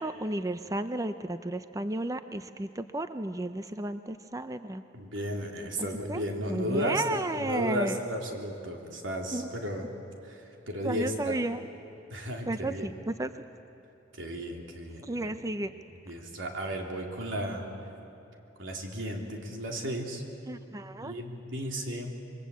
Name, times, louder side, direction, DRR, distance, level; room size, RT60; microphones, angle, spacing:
voice 1, 0.0-4.8 6.1-6.2 6.5-8.0 9.3-9.5 10.8-11.6 12.5-13.3 15.0-15.7 20.5-21.1, right 2 dB, 20° right, 10 dB, 0.5 m, -33 dB
voice 2, 4.9-9.9 10.2-11.4 12.1-12.9 14.1-15.4 16.1-17.7 18.6-20.2 21.0-22.1, equal, 85° right, 2 dB, 3.3 m, -34 dB
26.5 x 22.5 x 8.4 m, 2.8 s
head